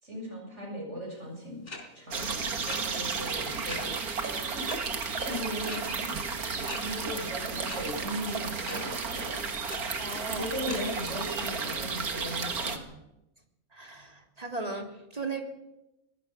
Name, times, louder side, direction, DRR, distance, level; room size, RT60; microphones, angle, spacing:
voice 1, 0.0-1.6 1.9-4.0 4.5-4.6 4.9-6.1 6.5-9.3 10.3-12.9, equal, 50° right, 0 dB, 7.6 m, -38 dB
sound 1, 1.7-1.8 2.7-2.8 3.7-3.8 4.7-4.8 5.7-5.8 6.7-6.8 7.7-7.8 8.7-8.8 9.7-9.8 10.7-10.8, left 3 dB, 40° left, 4.5 m, -38 dB
sound 2, 2.1-12.8, right 5 dB, 85° right, 2.3 m, -33 dB
voice 2, 10.0-10.5 13.7-15.4, right 3 dB, 25° right, 3 dB, 3.1 m, -37 dB
23.5 x 18.5 x 6.3 m, 0.92 s
omnidirectional pair, 1.5 m